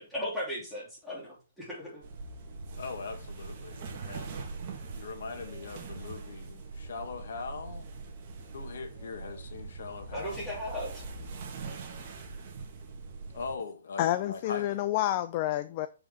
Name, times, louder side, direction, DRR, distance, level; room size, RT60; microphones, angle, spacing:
voice 1, 0.0-2.0 10.1-11.0, equal, 5° left, 3.1 m, -37 dB
sound 1, 2.0-13.6, right 4 dB, 35° right, 1.7 m, -42 dB
voice 2, 2.8-4.4 4.9-7.9 8.5-10.5 13.3-14.7, left 4 dB, 70° left, 1.5 m, -41 dB
voice 3, 14.0-15.9, left 14 dB, 30° left, 0.4 m, -29 dB
7.3 x 4.9 x 3.8 m
hypercardioid pair, 165°, 0 cm